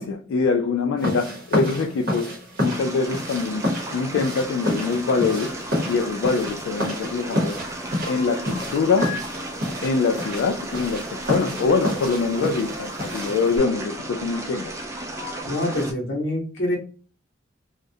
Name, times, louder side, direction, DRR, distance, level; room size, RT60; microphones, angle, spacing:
voice 1, 0.0-3.7 3.9-5.6 5.8-7.8 8.1-9.2 9.8-14.7, left 4 dB, 90° left, 0.3 m, -24 dB
sound 1, 1.0-13.6, left 1 dB, 50° right, 0.8 m, -30 dB
sound 2, 2.6-15.9, right 1 dB, 15° right, 0.4 m, -35 dB
sound 3, 6.4-7.2 7.4-9.3 9.6-12.1 13.1-13.2 14.2-14.8 15.1-15.4, left 4 dB, 20° left, 0.8 m, -41 dB
voice 2, 15.4-16.8, left 1 dB, 65° left, 0.8 m, -25 dB
2.3 x 2.0 x 2.6 m
head